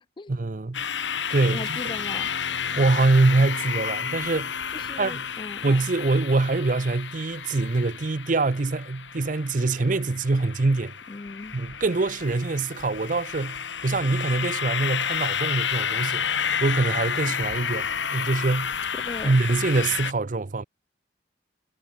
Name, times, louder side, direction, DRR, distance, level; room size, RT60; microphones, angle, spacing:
voice 1, 0.3-0.8 1.3-1.9 2.8-4.5 5.0-5.3 5.6-10.9 11.5-16.3 16.6-18.7 19.2-20.6, right 3 dB, 45° right, 0.6 m, -24 dB
sound 1, 0.7-20.1, left 7 dB, 80° left, 2.3 m, -31 dB
voice 2, 1.5-2.3 4.7-5.6 11.1-11.5 19.0-19.4, left 3 dB, 25° left, 0.4 m, -38 dB
head